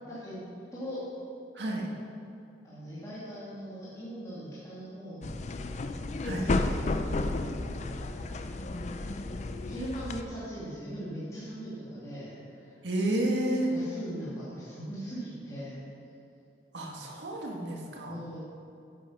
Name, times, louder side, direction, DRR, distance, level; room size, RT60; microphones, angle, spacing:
voice 1, 0.1-0.5 0.7-1.0 2.6-5.7 6.3-8.1 9.0-9.1 9.4-12.7 13.7-15.8 18.1-18.4, equal, 20° left, -10 dB, 2.3 m, -40 dB
voice 2, 1.5-1.9 6.2-6.5 12.8-13.7 16.7-18.2, right 1 dB, 90° right, 0 dB, 1.8 m, -30 dB
sound 1, 5.2-10.2, left 2 dB, 40° left, 0.5 m, -32 dB
10.0 x 8.2 x 5.8 m, 2.7 s
head